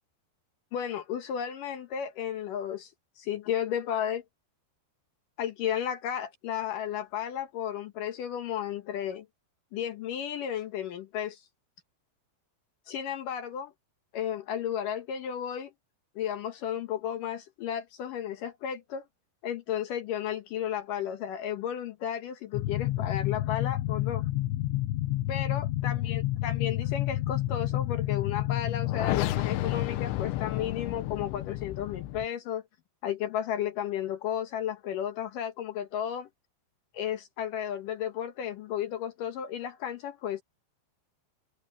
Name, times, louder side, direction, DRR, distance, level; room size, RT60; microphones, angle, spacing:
voice 1, 0.7-2.9 3.2-4.2 5.4-9.3 9.7-11.4 12.9-13.7 14.1-15.7 16.2-19.1 19.4-24.3 25.3-32.6 33.0-36.3 36.9-40.4, left 9 dB, 70° left, 2.2 m, -33 dB
sound 1, 22.5-32.3, left 16 dB, 85° left, 3.2 m, -30 dB
omnidirectional pair, 5.1 m